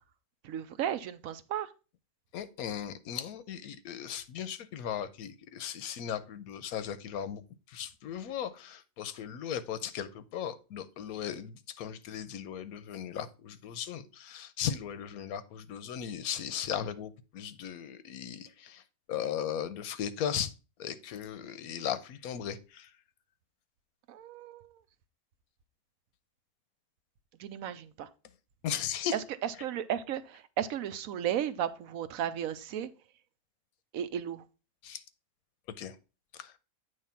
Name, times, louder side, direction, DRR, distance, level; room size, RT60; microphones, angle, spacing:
voice 1, 0.4-1.7 24.1-24.7 27.4-28.1 29.1-32.9 33.9-34.4, right 10 dB, 75° right, 1.0 m, -34 dB
voice 2, 2.3-7.4 7.7-18.8 19.1-20.5 20.8-22.9 28.6-29.2 34.8-35.0 35.7-36.0 36.4-36.5, left 9 dB, 85° left, 1.1 m, -37 dB
8.8 x 3.2 x 5.6 m
omnidirectional pair, 1.5 m